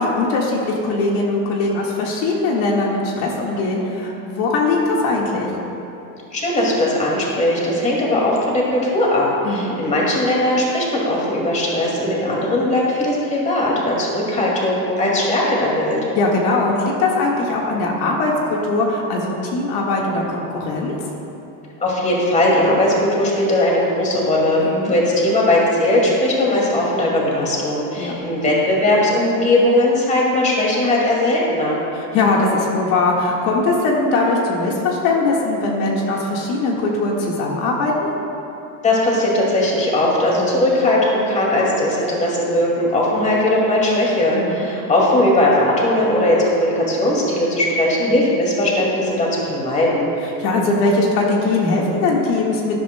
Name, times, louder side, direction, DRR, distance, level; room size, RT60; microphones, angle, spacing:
voice 1, 0.0-5.5 9.4-9.8 16.2-20.9 24.6-24.9 28.0-28.2 31.9-38.1 40.3-40.6 44.3-44.7 50.4-52.8, left 3 dB, 65° left, -2 dB, 1.7 m, -20 dB
voice 2, 6.3-16.0 21.8-31.8 38.8-50.1, left 1 dB, 15° left, -4 dB, 2.2 m, -18 dB
18.0 x 11.0 x 2.2 m, 2.9 s
cardioid pair, 155°, 42 cm